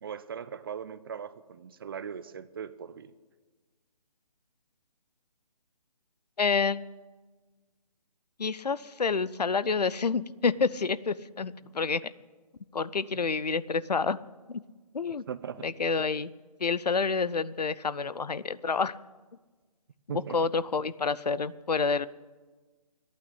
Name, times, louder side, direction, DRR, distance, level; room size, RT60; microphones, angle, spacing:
voice 1, 0.0-3.1 15.3-15.6 20.1-20.4, right 7 dB, 35° right, 15 dB, 0.5 m, -39 dB
voice 2, 6.4-6.8 8.4-12.1 12.7-14.2 14.5-14.6 14.9-15.2 15.6-16.3 16.6-19.0 20.1-22.1, left 5 dB, 80° left, 18 dB, 0.6 m, -28 dB
11.5 x 9.0 x 9.7 m, 1.3 s
figure-of-eight pair, 145°, 20 cm